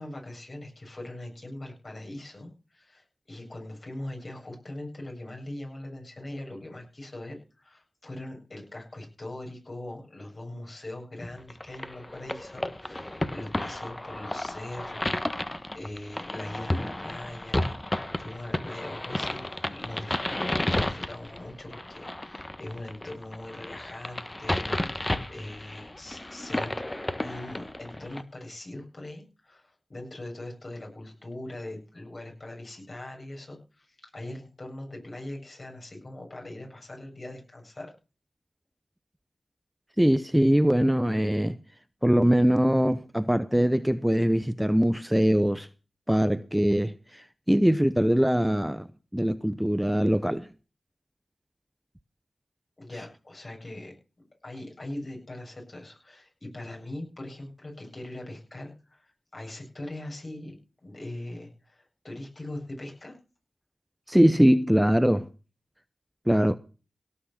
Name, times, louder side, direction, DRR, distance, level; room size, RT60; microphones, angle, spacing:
voice 1, 0.0-26.7 27.2-37.9 52.8-53.9 54.4-63.2, left 1 dB, 45° left, 7.7 m, -41 dB
sound 1, 11.5-28.2, left 1 dB, 25° left, 1.4 m, -32 dB
voice 2, 40.0-41.6 42.0-45.7 46.1-48.9 49.1-50.5 64.1-65.3 66.3-66.6, equal, 5° right, 0.7 m, -22 dB
17.5 x 6.4 x 7.2 m
cardioid pair, 45°, 0 cm